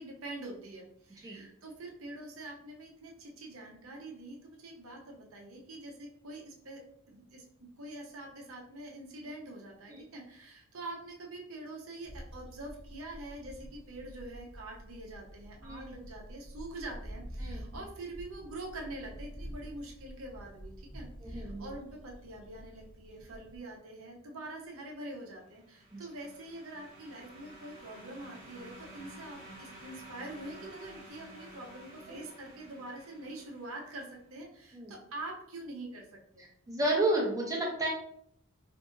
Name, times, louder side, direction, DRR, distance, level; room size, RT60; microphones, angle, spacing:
voice 1, 0.0-6.8 7.1-36.4, right 2 dB, 70° right, 0 dB, 0.7 m, -45 dB
sound 1, 12.0-23.6, equal, 20° left, 0.7 m, -47 dB
voice 2, 21.2-21.7 25.9-26.0 32.1-32.2 34.7-34.9 36.7-37.9, right 1 dB, 15° right, -3 dB, 0.7 m, -31 dB
sound 2, 25.5-34.1, right 1 dB, 40° right, 1.2 m, -52 dB
2.6 x 2.5 x 3.7 m, 0.70 s
head